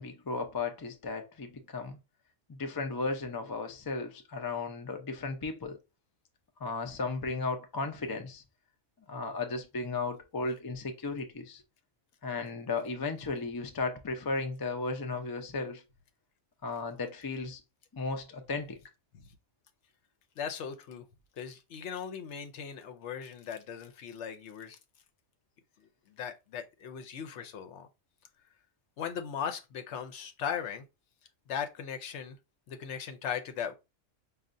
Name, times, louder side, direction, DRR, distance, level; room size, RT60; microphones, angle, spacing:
voice 1, 0.0-2.0 2.5-5.8 6.6-8.4 9.1-11.6 12.2-15.8 16.6-17.6 17.9-18.8, left 3 dB, 35° left, 0.3 m, -35 dB
voice 2, 20.4-21.1 21.4-24.8 26.1-27.9 29.0-30.8 31.5-32.4 32.7-33.7, left 7 dB, 70° left, 0.9 m, -38 dB
5.3 x 2.4 x 2.5 m
omnidirectional pair, 1.3 m